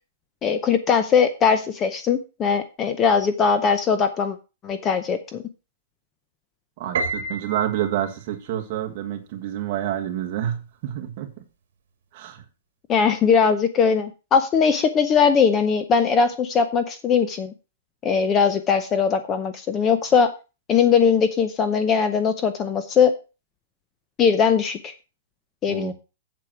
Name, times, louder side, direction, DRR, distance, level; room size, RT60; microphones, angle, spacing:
voice 1, 0.4-4.4 4.6-5.4 12.9-17.5 18.0-20.3 20.7-23.1 24.2-24.9 25.6-25.9, left 6 dB, 15° left, 10 dB, 0.6 m, -20 dB
voice 2, 6.8-11.3 12.1-12.4 25.7-25.9, right 11 dB, 30° right, 3 dB, 1.6 m, -28 dB
Piano, 6.9-8.2, right 3 dB, 65° right, 1.8 m, -29 dB
8.2 x 7.7 x 5.7 m, 0.31 s
hypercardioid pair, 180°, 0 cm